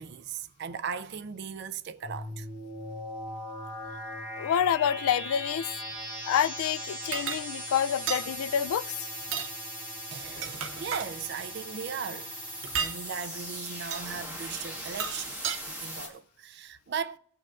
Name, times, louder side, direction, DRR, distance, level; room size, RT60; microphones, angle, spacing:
voice 1, 0.0-2.5 10.1-12.3 12.8-17.2, right 6 dB, 50° right, 0.4 m, -37 dB
sound 1, 2.0-16.1, equal, 10° right, 2.0 m, -39 dB
voice 2, 4.4-5.7 6.3-9.1, left 9 dB, 90° left, 0.3 m, -27 dB
sound 2, 7.1-7.4 8.1-8.3 9.2-9.5 10.2-11.1 12.6-13.0 13.9-14.1 14.8-15.6, right 7 dB, 70° right, 0.8 m, -33 dB
22.0 x 7.5 x 2.4 m
head